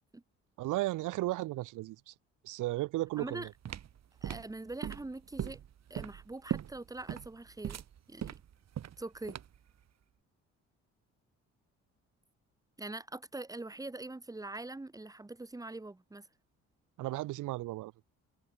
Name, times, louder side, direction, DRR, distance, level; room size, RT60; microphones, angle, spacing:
voice 1, 0.6-2.1 2.4-3.5 17.0-17.9, right 18 dB, 90° right, 1.1 m, -35 dB
voice 2, 3.2-3.5 4.2-5.6 5.9-7.8 8.1-8.4 9.0-9.4 12.8-16.3, right 2 dB, 10° right, 1.5 m, -43 dB
sound 1, 3.2-9.7, right 10 dB, 60° right, 2.7 m, -40 dB
cardioid pair, 90°, 30 cm